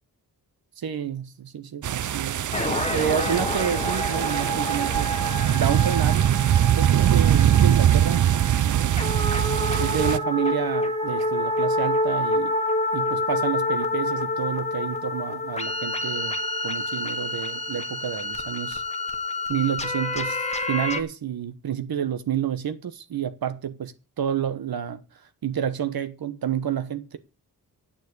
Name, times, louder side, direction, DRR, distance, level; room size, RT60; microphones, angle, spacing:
voice 1, 0.8-5.1 5.5-6.4 6.7-8.3 9.8-12.5 12.9-16.3 16.6-18.8 19.5-25.0 25.4-27.2, right 9 dB, 75° right, 1.1 m, -29 dB
sound 1, 1.8-10.2, right 10 dB, 55° right, 0.5 m, -22 dB
sound 2, 2.5-21.0, left 1 dB, 20° left, 1.4 m, -28 dB
9.2 x 7.2 x 8.2 m
wide cardioid pair, 145°, 37 cm